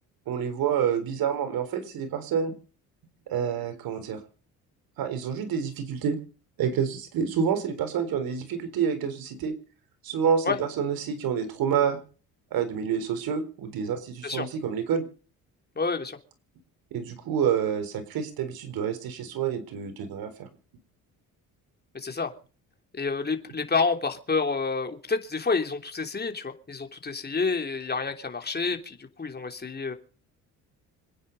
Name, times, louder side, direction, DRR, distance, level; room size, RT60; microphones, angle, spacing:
voice 1, 0.3-2.5 3.3-4.2 5.0-6.2 6.6-9.5 10.0-12.0 12.5-15.1 16.9-20.5, right 7 dB, 75° right, 4.1 m, -28 dB
voice 2, 15.8-16.2 21.9-22.3 22.9-29.9, left 4 dB, 25° left, 3.0 m, -29 dB
26.5 x 9.7 x 5.3 m
supercardioid pair, 75°, 36 cm